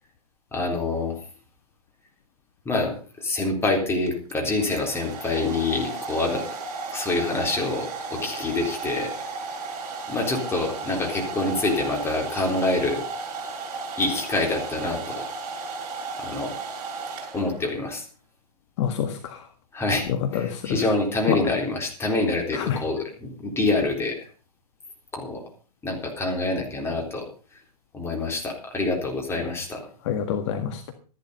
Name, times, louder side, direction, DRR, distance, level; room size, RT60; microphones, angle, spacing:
voice 1, 0.5-1.2 2.7-6.4 6.9-9.1 10.1-13.0 14.0-15.2 16.2-16.5 17.3-18.0 19.7-24.3 25.1-25.4 25.8-27.2 27.9-29.8, left 2 dB, 10° left, 1 dB, 3.9 m, -26 dB
Domestic sounds home sounds, 4.1-17.8, right 4 dB, 35° right, 7.3 m, -34 dB
voice 2, 18.8-19.4 20.1-20.9 21.3-21.4 22.5-22.8 30.0-30.9, left 8 dB, 45° left, 7 dB, 1.7 m, -27 dB
13.5 x 11.0 x 5.3 m, 0.37 s
figure-of-eight pair, 115°, 20 cm